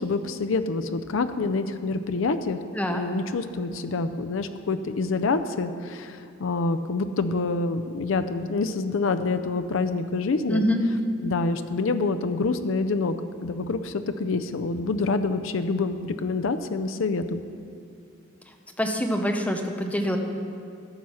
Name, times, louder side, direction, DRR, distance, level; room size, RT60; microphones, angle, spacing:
voice 1, 0.0-2.6 2.9-10.6 11.2-17.4, left 3 dB, 75° left, 9 dB, 0.5 m, -27 dB
voice 2, 10.5-10.8 18.8-20.2, equal, 5° left, 3 dB, 0.8 m, -25 dB
14.0 x 6.3 x 5.6 m, 2.4 s
head